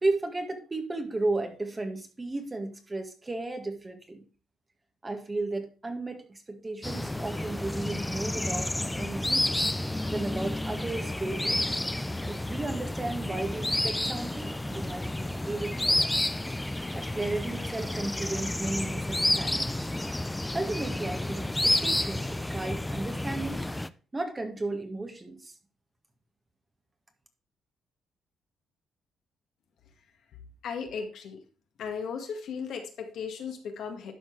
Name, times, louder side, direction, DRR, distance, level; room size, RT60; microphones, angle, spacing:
voice 1, 0.0-4.3 5.0-9.5 10.1-11.8 12.3-16.1 16.9-19.7 20.5-23.6 24.1-25.5, right 2 dB, 20° right, 5 dB, 1.7 m, -34 dB
sound 1, 6.8-23.9, left 1 dB, 10° left, 0.5 m, -30 dB
voice 2, 30.6-31.4 31.8-34.1, left 6 dB, 70° left, 4 dB, 1.8 m, -36 dB
11.5 x 4.5 x 4.7 m, 0.37 s
cardioid pair, 90°, 0 cm